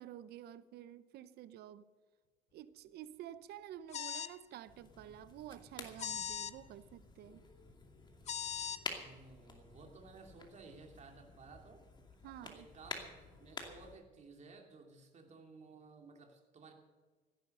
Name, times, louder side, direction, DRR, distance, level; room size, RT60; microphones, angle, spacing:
voice 1, 0.0-1.9 2.5-7.4 12.2-12.7, right 11 dB, 75° right, 0.7 m, -50 dB
sound 1, 3.9-4.4 6.0-6.5 8.3-8.8, left 8 dB, 40° left, 0.6 m, -39 dB
sound 2, 4.6-14.0, left 3 dB, 25° left, 2.5 m, -50 dB
voice 2, 8.7-11.9 12.4-16.7, right 4 dB, 45° right, 2.8 m, -56 dB
15.5 x 10.5 x 6.7 m
cardioid pair, 110°, 17 cm